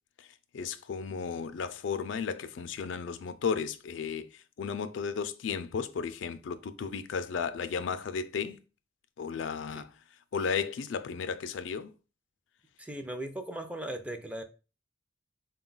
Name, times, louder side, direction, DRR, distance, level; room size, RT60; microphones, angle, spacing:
voice 1, 0.5-8.6 9.2-9.9 10.3-11.9, left 6 dB, 70° left, 0.4 m, -34 dB
voice 2, 12.8-14.4, right 1 dB, 5° right, 0.3 m, -38 dB
3.8 x 2.3 x 3.8 m
head